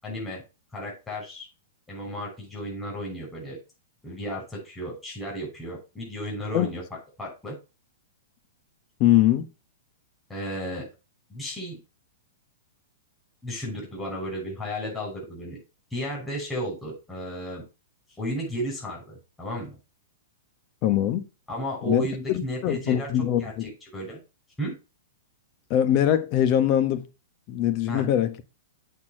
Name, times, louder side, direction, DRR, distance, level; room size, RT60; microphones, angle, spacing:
voice 1, 0.0-0.4 0.7-1.5 1.9-3.6 4.0-6.8 7.2-7.6 10.3-10.9 11.3-11.8 13.4-15.6 15.9-17.6 18.2-19.8 21.5-23.1 23.4-24.2 24.6-24.8 27.9-28.1, equal, 10° left, 5.9 m, -33 dB
voice 2, 9.0-9.5 20.8-21.3 21.9-23.7 25.7-27.1 27.5-28.3, left 11 dB, 45° left, 1.2 m, -22 dB
8.3 x 4.7 x 6.1 m
hypercardioid pair, 125°, 0 cm